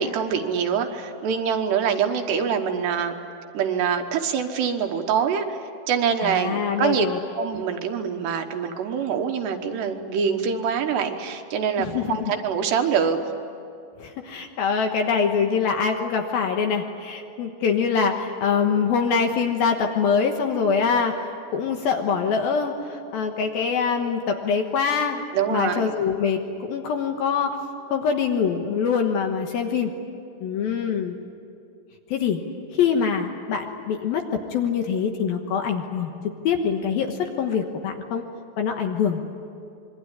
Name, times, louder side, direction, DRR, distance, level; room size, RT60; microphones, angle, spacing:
voice 1, 0.0-3.2 3.5-7.1 7.4-13.3 25.3-25.9, right 7 dB, 70° right, 5 dB, 3.2 m, -25 dB
voice 2, 6.2-7.5 11.8-12.3 14.0-25.2 25.5-27.6 27.9-29.9 30.4-31.1 32.1-32.4 32.7-36.1 36.4-38.2 38.6-39.2, left 6 dB, 65° left, 4 dB, 2.6 m, -24 dB
26.0 x 23.0 x 10.0 m, 2.6 s
omnidirectional pair, 5.3 m